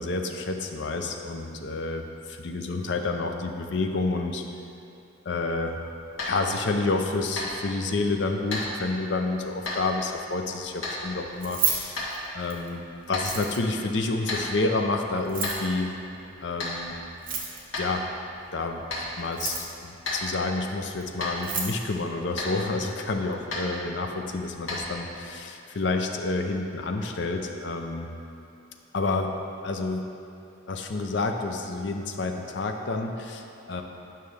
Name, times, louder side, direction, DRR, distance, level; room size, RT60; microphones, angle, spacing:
voice 1, 0.0-4.4 5.2-5.8 6.2-12.0 12.3-15.9 16.4-17.0 17.8-18.1 18.5-18.8 19.2-28.1 28.9-30.1 30.7-33.8, left 3 dB, 60° left, 4 dB, 0.5 m, -29 dB
sound 1, 6.1-25.3, left 1 dB, 85° left, 1.7 m, -37 dB
Keys jangling, 11.3-12.7 13.1-13.8 15.2-15.7 17.1-17.8 19.2-19.8 21.0-21.1 21.3-21.8, right 6 dB, 45° right, 1.0 m, -30 dB
9.3 x 5.6 x 3.3 m, 2.8 s
head